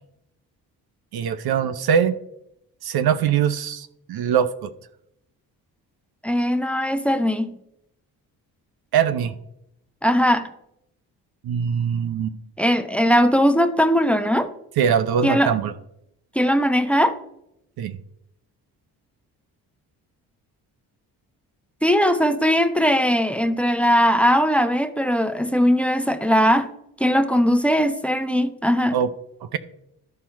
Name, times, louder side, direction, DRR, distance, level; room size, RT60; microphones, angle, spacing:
voice 1, 1.1-2.1 2.8-4.7 8.9-9.4 11.4-12.3 14.8-15.7 17.8-18.0 28.9-29.1 29.5-29.6, right 8 dB, 60° right, 12 dB, 0.7 m, -22 dB
voice 2, 6.2-7.6 10.0-10.5 12.6-14.5 15.2-15.5 16.3-17.1 21.8-26.7 27.0-29.0, equal, 5° left, 10 dB, 0.8 m, -19 dB
13.0 x 4.3 x 4.6 m, 0.79 s
supercardioid pair, 55°, 41 cm